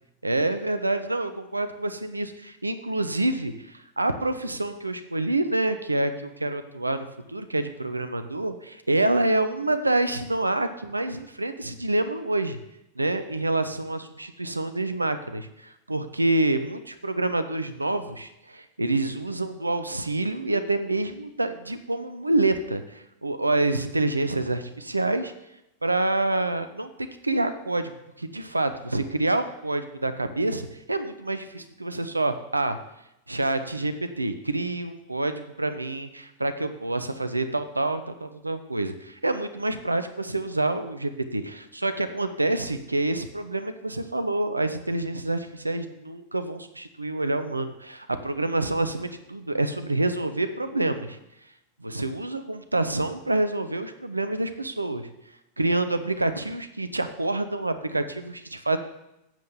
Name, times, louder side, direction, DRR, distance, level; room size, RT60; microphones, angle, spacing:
voice 1, 0.2-12.6 13.0-25.3 25.8-27.9 28.2-32.8 33.3-51.2 51.8-55.1 55.6-58.8, right 2 dB, 85° right, 10 dB, 0.9 m, -27 dB
9.1 x 7.9 x 7.1 m, 0.87 s
figure-of-eight pair, 90°, 0 cm